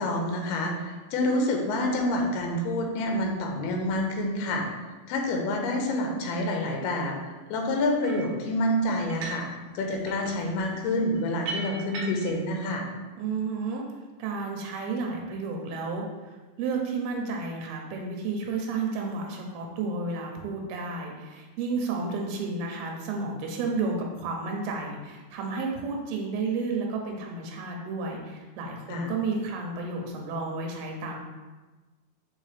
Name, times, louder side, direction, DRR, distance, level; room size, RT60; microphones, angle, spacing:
voice 1, 0.0-4.7 5.1-12.9 28.9-29.1, left 1 dB, 85° left, 2 dB, 2.8 m, -28 dB
sound 1, 8.0-8.3 9.0-9.5 9.8-12.4, right 3 dB, 70° right, 1.8 m, -38 dB
voice 2, 13.2-13.8 14.2-31.2, right 4 dB, 85° right, 1 dB, 2.7 m, -32 dB
6.4 x 4.4 x 3.3 m, 1.2 s
omnidirectional pair, 4.4 m